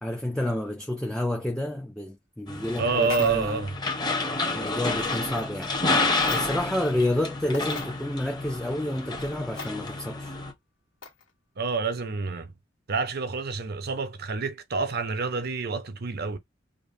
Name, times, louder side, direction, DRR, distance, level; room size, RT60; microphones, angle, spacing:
voice 1, 0.0-3.6 4.5-5.7 6.3-10.4, left 1 dB, 5° left, 0.4 m, -29 dB
sound 1, 2.5-10.5, left 3 dB, 20° left, 0.9 m, -30 dB
voice 2, 2.8-3.8 11.6-12.5 12.9-16.4, right 4 dB, 55° right, 0.6 m, -28 dB
sound 2, 3.0-3.6 5.0-5.2 6.1-6.7 7.1-7.2 7.5-7.9 9.6-9.7 11.0-11.3, left 4 dB, 85° left, 1.4 m, -39 dB
5.1 x 2.1 x 2.6 m
head